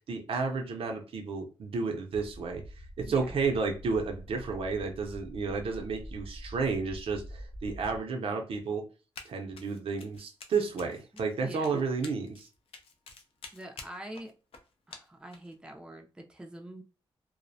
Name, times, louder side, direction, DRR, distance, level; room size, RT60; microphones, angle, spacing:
voice 1, 0.1-2.6 3.0-8.8 9.3-12.5, right 4 dB, 75° right, 3 dB, 0.5 m, -32 dB
sound 1, 2.1-8.0, equal, 60° left, 0.8 m, -45 dB
voice 2, 3.1-3.4 11.4-11.8 13.5-14.3 14.9-16.8, right 1 dB, 10° right, 3 dB, 0.4 m, -45 dB
Run, 9.2-9.3 9.6-15.5, left 4 dB, 80° left, 0.4 m, -49 dB
2.4 x 2.0 x 2.6 m, 0.33 s
wide cardioid pair, 105°, 10 cm